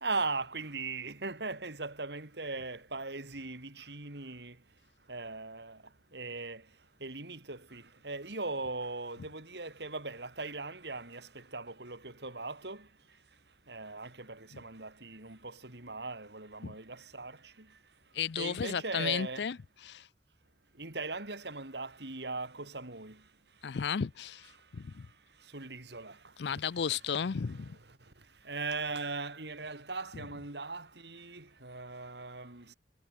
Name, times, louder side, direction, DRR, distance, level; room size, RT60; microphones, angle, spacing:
voice 1, 0.0-4.6 5.1-5.8 6.1-6.6 7.0-12.9 13.7-17.4 18.4-19.5 20.8-23.2 25.5-26.2 27.2-27.4 28.5-32.7, right 3 dB, 65° right, 3.6 m, -39 dB
voice 2, 18.1-19.5 19.8-20.1 23.6-25.1 26.4-27.8, left 7 dB, 70° left, 0.5 m, -34 dB
head